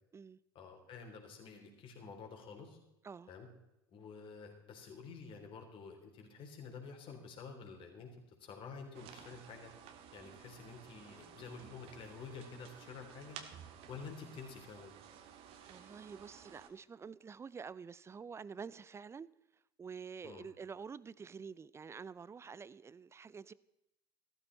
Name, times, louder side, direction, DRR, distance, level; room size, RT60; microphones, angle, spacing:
voice 1, 0.5-2.8 3.3-3.5 3.9-8.1 8.4-13.4 13.9-14.9 20.2-20.5, left 5 dB, 45° left, 3.8 m, -50 dB
sound 1, 8.9-16.7, right 8 dB, 50° right, 1.8 m, -54 dB
voice 2, 15.7-19.3 19.8-23.5, right 6 dB, 20° right, 0.5 m, -48 dB
15.0 x 13.0 x 4.1 m
hypercardioid pair, 75°, 13 cm